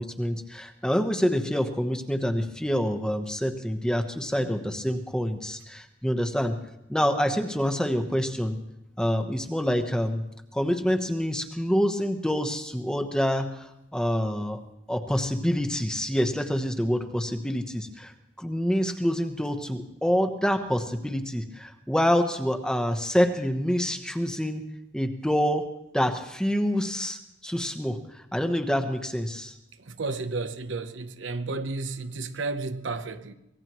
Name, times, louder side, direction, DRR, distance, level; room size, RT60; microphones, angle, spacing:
voice 1, 0.0-6.6 6.9-8.6 9.0-10.2 10.5-14.6 14.9-18.1 18.4-24.7 24.9-25.7 25.9-29.5, equal, 5° left, 1.0 m, -27 dB
voice 2, 29.8-33.3, right 3 dB, 80° right, 0.9 m, -32 dB
24.5 x 18.5 x 3.1 m
head